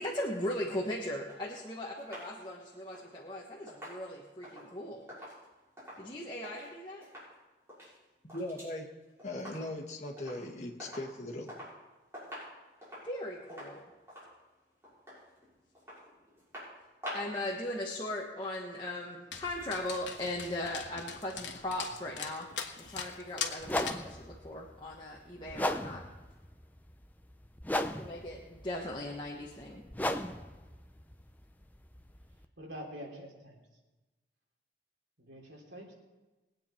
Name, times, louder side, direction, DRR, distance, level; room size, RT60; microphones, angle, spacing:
voice 1, 0.0-5.1 6.0-7.1 13.0-13.8 17.1-22.5 22.8-26.0 28.0-29.8, left 1 dB, 25° left, -3 dB, 1.3 m, -38 dB
sound 1, 1.3-6.7 7.0-7.3 7.6-8.8 9.0-9.9 10.2-10.4 10.8-11.8 12.1-17.4 17.7-17.8, equal, 15° right, 6.0 m, -48 dB
voice 2, 8.2-8.9 9.2-11.5, left 1 dB, 40° left, 1 dB, 1.8 m, -39 dB
Dog, 19.3-24.1, left 7 dB, 90° left, 1.3 m, -41 dB
sound 2, 22.8-23.0 23.6-32.4, left 1 dB, 10° left, 0.6 m, -37 dB
voice 3, 32.6-33.5 35.2-35.9, equal, 85° right, -1 dB, 3.3 m, -45 dB
21.5 x 8.9 x 4.4 m, 1.1 s
head